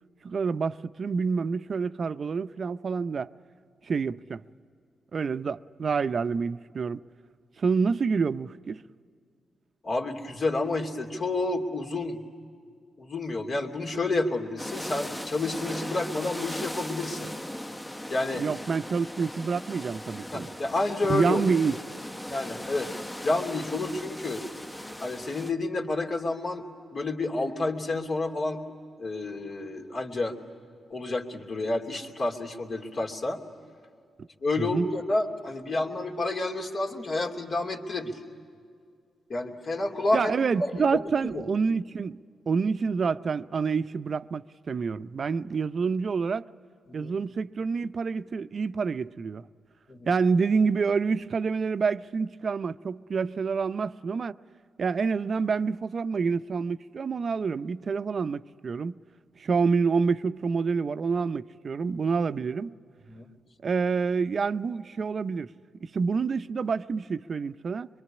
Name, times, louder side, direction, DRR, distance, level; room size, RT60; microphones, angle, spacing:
voice 1, 0.2-3.3 3.9-4.4 5.1-7.0 7.6-8.8 18.4-20.5 21.1-21.8 34.2-34.3 34.6-34.9 40.1-46.5 46.9-49.5 50.1-54.4 54.8-59.0 59.4-62.7 63.6-65.5 65.8-67.9, right 5 dB, 55° right, 0.6 m, -27 dB
voice 2, 9.8-12.2 13.0-17.3 18.1-18.5 20.3-21.4 22.3-22.9 23.2-24.5 25.0-26.7 26.9-28.6 29.0-30.4 30.9-33.4 34.4-38.2 39.3-40.3 40.6-41.0 41.3-41.5 46.9-47.1 49.9-50.1 63.1-63.3, left 2 dB, 55° left, 2.8 m, -29 dB
sound 1, 14.6-25.5, left 1 dB, 15° left, 0.9 m, -38 dB
24.0 x 23.5 x 9.9 m
supercardioid pair, 55°, 0 cm